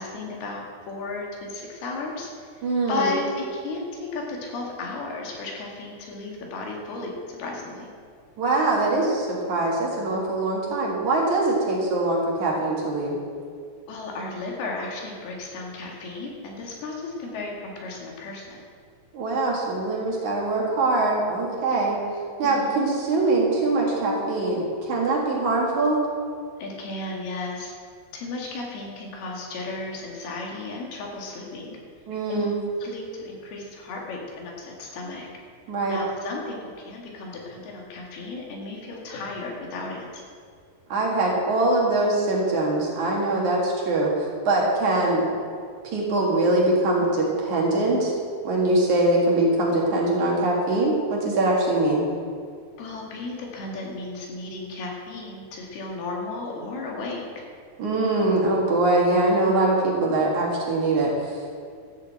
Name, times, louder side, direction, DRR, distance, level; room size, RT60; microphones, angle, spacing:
voice 1, 0.0-2.3 2.9-7.9 13.9-18.6 22.4-22.8 26.6-27.7 28.1-31.8 32.3-32.4 32.8-35.3 35.9-40.2 52.8-57.3, left 3 dB, 75° left, -1 dB, 4.0 m, -34 dB
voice 2, 2.6-3.2 8.4-13.1 19.1-22.0 22.4-26.0 32.1-32.6 35.7-36.0 40.9-45.3 45.8-48.1 48.4-52.0 57.8-61.6, right 2 dB, 55° right, -3 dB, 3.0 m, -23 dB
13.0 x 8.2 x 7.6 m, 2.2 s
omnidirectional pair, 4.6 m